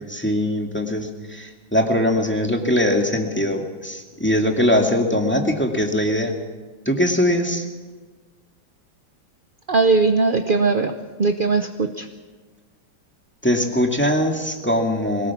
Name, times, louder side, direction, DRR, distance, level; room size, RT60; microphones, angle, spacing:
voice 1, 0.0-6.3 6.9-7.6 13.4-15.3, left 1 dB, 5° left, 2 dB, 2.0 m, -21 dB
voice 2, 9.7-10.9 11.2-12.1, right 4 dB, 50° right, 7 dB, 0.6 m, -19 dB
22.0 x 18.5 x 7.4 m, 1.4 s
omnidirectional pair, 2.1 m